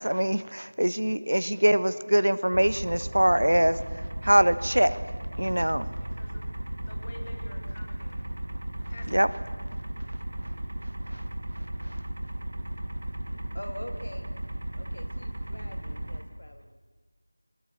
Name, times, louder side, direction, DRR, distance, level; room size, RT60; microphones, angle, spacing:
voice 1, 0.0-3.8 4.2-5.0 5.4-5.9 9.1-9.3 11.1-11.2, right 1 dB, 80° right, 15 dB, 1.1 m, -23 dB
sound 1, 2.5-16.2, right 1 dB, 55° right, 2.6 m, -35 dB
voice 2, 3.3-3.9 13.5-14.3 14.8-16.8, left 1 dB, 70° left, 6 dB, 2.7 m, -44 dB
voice 3, 5.7-6.4 6.9-8.3 8.9-9.5, left 2 dB, 25° left, 3 dB, 2.6 m, -49 dB
20.0 x 19.5 x 8.2 m, 1.4 s
figure-of-eight pair, 175°, 0 cm